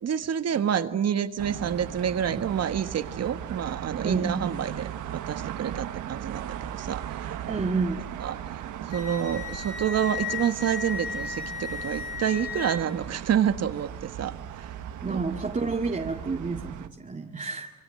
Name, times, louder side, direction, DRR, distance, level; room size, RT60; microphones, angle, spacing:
voice 1, 0.0-4.9 5.3-7.4 8.2-8.4 8.9-14.7 15.1-15.2, right 9 dB, 55° right, 11 dB, 1.7 m, -28 dB
sound 1, 1.4-16.9, right 10 dB, 80° right, 1.5 m, -38 dB
voice 2, 4.0-4.4 7.5-8.1 15.0-17.7, right 4 dB, 25° right, 0 dB, 2.1 m, -30 dB
Wind instrument woodwind instrument, 8.9-12.8, left 6 dB, 80° left, 7.6 m, -35 dB
27.0 x 23.5 x 7.8 m, 1.0 s
cardioid pair, 90°, 30 cm